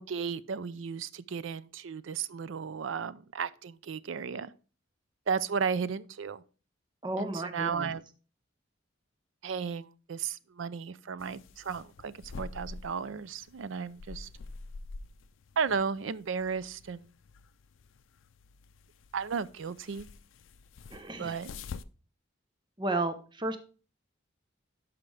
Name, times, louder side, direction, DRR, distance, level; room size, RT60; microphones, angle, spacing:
voice 1, 0.0-4.5 5.3-6.4 7.2-8.0 9.4-14.3 15.6-17.1 19.1-20.1 21.2-21.5, right 6 dB, 75° right, 0.5 m, -34 dB
voice 2, 7.0-7.9 20.9-21.4 22.8-23.6, right 2 dB, 25° right, 0.8 m, -33 dB
sound 1, 11.2-21.8, left 4 dB, 80° left, 0.4 m, -47 dB
11.5 x 5.1 x 3.3 m
head